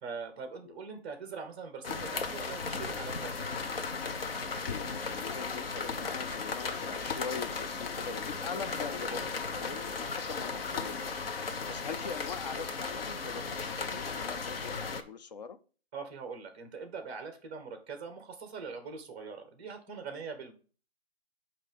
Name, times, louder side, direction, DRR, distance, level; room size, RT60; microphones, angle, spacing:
voice 1, 0.0-3.5 15.9-20.5, right 5 dB, 10° right, 7 dB, 0.7 m, -42 dB
sound 1, 1.8-15.0, left 4 dB, 65° left, 1.0 m, -36 dB
voice 2, 4.5-15.6, left 5 dB, 40° left, 11 dB, 0.5 m, -42 dB
8.4 x 2.9 x 5.1 m, 0.38 s
hypercardioid pair, 155°, 32 cm